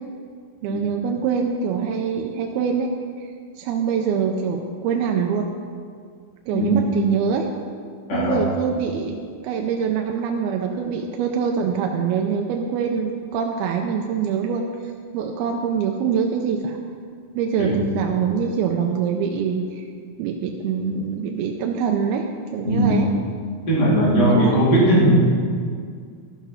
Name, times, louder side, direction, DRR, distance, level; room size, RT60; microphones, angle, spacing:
voice 1, 0.6-2.9 3.2-3.3 3.6-5.5 6.5-7.5 8.1-16.8 17.3-19.9 20.2-22.3 22.5-23.1 24.3-24.6, right 6 dB, 85° right, 2 dB, 2.5 m, -24 dB
voice 2, 8.1-8.5 17.6-17.8 22.6-23.0 23.7-25.3, right 1 dB, 30° left, -7 dB, 3.3 m, -18 dB
12.5 x 7.0 x 5.7 m, 2.1 s
omnidirectional pair, 4.3 m